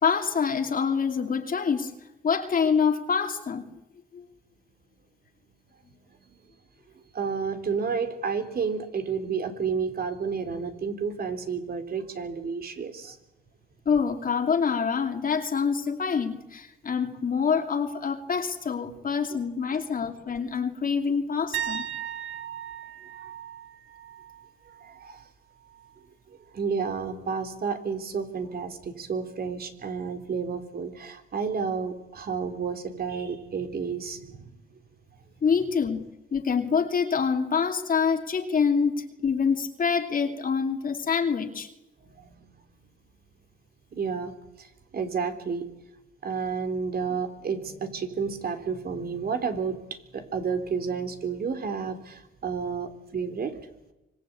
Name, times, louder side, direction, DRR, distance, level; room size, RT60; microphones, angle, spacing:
voice 1, 0.0-2.0 2.2-3.6 4.1-4.2 13.9-21.8 35.4-41.7, left 6 dB, 45° left, 5 dB, 2.7 m, -26 dB
voice 2, 7.1-13.2 23.2-23.3 24.8-25.2 26.3-34.5 42.0-42.5 43.9-45.7 46.2-49.8 50.1-53.6, right 5 dB, 50° right, 7 dB, 3.7 m, -31 dB
sound 1, 21.5-25.3 25.6-26.0 28.8-28.9, right 10 dB, 75° right, 1.8 m, -37 dB
25.5 x 21.5 x 8.6 m, 0.93 s
cardioid pair, 90°, 20 cm